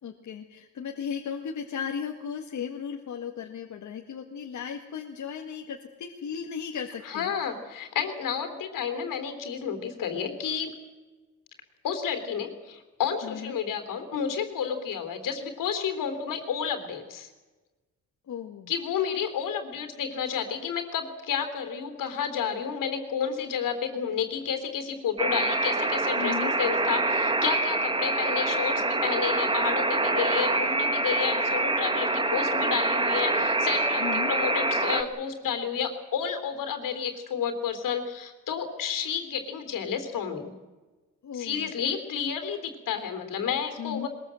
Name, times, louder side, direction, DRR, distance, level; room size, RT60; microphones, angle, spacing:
voice 1, 0.0-7.3 13.2-13.6 18.3-18.7 26.2-26.6 34.0-34.4 41.2-41.7 43.8-44.1, left 7 dB, 65° left, 2 dB, 1.9 m, -36 dB
voice 2, 7.0-10.7 11.8-17.3 18.7-40.5 41.3-44.1, left 7 dB, 85° left, 8 dB, 3.6 m, -31 dB
Alarm, 25.2-35.0, right 2 dB, 15° right, 1.4 m, -26 dB
22.0 x 21.0 x 7.7 m, 1.2 s
cardioid pair, 140°, 32 cm